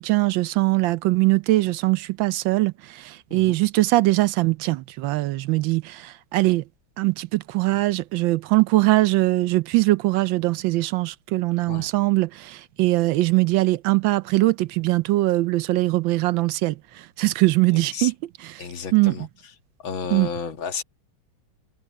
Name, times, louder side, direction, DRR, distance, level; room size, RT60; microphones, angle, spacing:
voice 1, 0.0-6.6 7.0-18.1 18.4-18.7 18.9-19.2 20.1-20.3, right 19 dB, 75° right, 1.3 m, -21 dB
voice 2, 17.7-18.1 18.6-19.3 19.8-20.8, left 6 dB, 75° left, 2.3 m, -32 dB
omnidirectional pair, 2.2 m